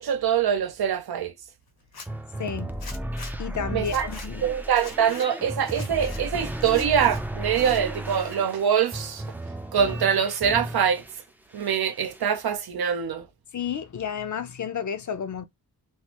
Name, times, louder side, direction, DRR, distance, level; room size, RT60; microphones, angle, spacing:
voice 1, 0.0-1.3 3.7-4.1 4.4-9.2 9.7-11.0 11.5-13.3, right 8 dB, 75° right, 0.6 m, -24 dB
Zipper (clothing), 1.8-2.1 2.8-3.3 3.8-4.3 4.7-5.3 5.6-6.2 6.6-7.2 7.5-8.4 8.7-9.3, left 4 dB, 75° left, 1.1 m, -43 dB
sound 1, 2.1-11.2 11.5-12.3, right 1 dB, 5° right, 0.4 m, -35 dB
voice 2, 2.4-2.7 3.4-4.5 13.5-15.5, left 7 dB, 50° left, 0.6 m, -31 dB
3.2 x 2.0 x 2.9 m
wide cardioid pair, 85°, 38 cm